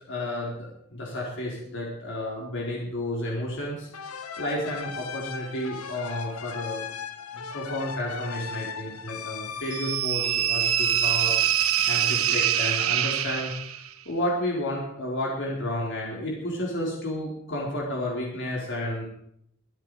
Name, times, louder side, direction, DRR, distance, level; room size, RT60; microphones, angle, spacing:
voice 1, 0.1-3.9 4.4-6.8 7.3-11.3 11.8-13.5 14.1-19.1, left 1 dB, 55° left, -3 dB, 4.2 m, -31 dB
sound 1, 3.9-11.4, left 6 dB, 85° left, 1.3 m, -38 dB
sound 2, 9.7-13.9, right 10 dB, 70° right, 1.1 m, -24 dB
25.5 x 9.1 x 4.9 m, 0.72 s
head